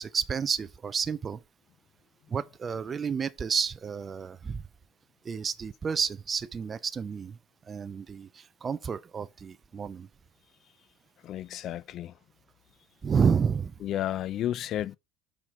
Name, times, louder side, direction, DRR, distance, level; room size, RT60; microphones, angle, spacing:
voice 1, 0.0-1.4 2.3-4.6 5.3-7.3 7.7-8.3 8.6-10.1 13.0-13.7, right 6 dB, 25° right, 0.4 m, -30 dB
voice 2, 11.2-12.1 13.8-15.0, left 12 dB, 45° left, 0.3 m, -32 dB
5.7 x 4.5 x 4.8 m
cardioid pair, 145°, 0 cm